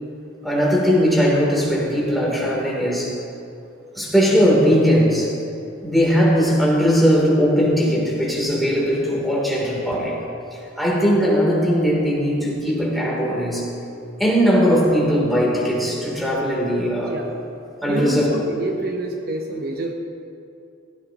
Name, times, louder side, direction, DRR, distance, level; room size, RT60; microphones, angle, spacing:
voice 1, 0.4-3.2 3.9-5.3 5.8-10.2 10.8-13.7 14.2-17.1 17.8-18.3, equal, ahead, -5 dB, 3.3 m, -19 dB
voice 2, 17.1-17.4 17.9-19.9, right 2 dB, 55° right, 2 dB, 0.9 m, -27 dB
17.0 x 17.0 x 3.0 m, 2.6 s
head